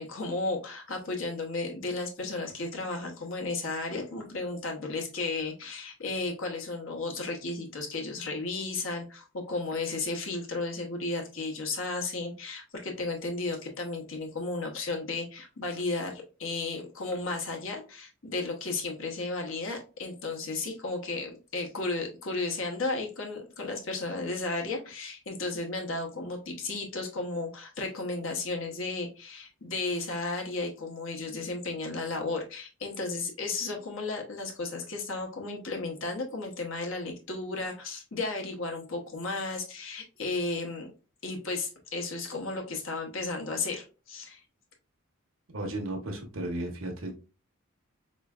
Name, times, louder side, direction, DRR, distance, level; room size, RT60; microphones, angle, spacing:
voice 1, 0.0-40.9 41.2-44.4, left 3 dB, 65° left, 2 dB, 1.0 m, -34 dB
voice 2, 45.5-47.1, right 1 dB, 65° right, 3 dB, 1.0 m, -34 dB
4.2 x 3.1 x 2.3 m, 0.33 s
head